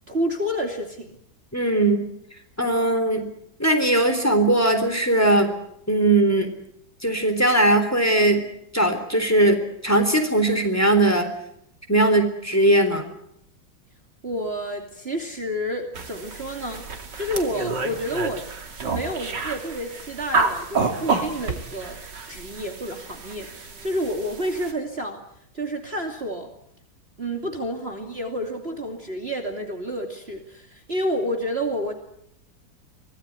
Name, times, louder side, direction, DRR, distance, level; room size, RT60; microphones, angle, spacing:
voice 1, 0.1-1.1 14.2-16.8 17.1-18.4 18.8-22.0 22.3-23.5 23.8-25.2 25.5-26.5 27.2-31.9, equal, 30° right, 3 dB, 2.8 m, -29 dB
voice 2, 1.5-2.0 2.6-3.3 3.6-5.5 5.9-6.5 7.0-8.4 8.7-11.3 11.9-13.1, right 1 dB, 5° left, 7 dB, 3.7 m, -19 dB
sound 1, 16.0-24.7, right 4 dB, 60° right, 3.1 m, -29 dB
25.0 x 18.0 x 9.6 m, 0.75 s
omnidirectional pair, 2.1 m